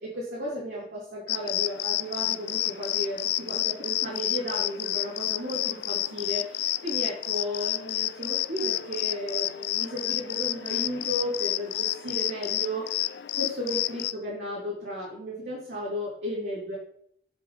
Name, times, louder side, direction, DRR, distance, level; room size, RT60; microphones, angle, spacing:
voice 1, 0.0-13.0 13.3-16.8, equal, 65° right, -7 dB, 3.4 m, -34 dB
sound 1, 1.3-14.1, left 15 dB, 65° left, 0.4 m, -30 dB
10.0 x 7.2 x 3.5 m, 0.68 s
head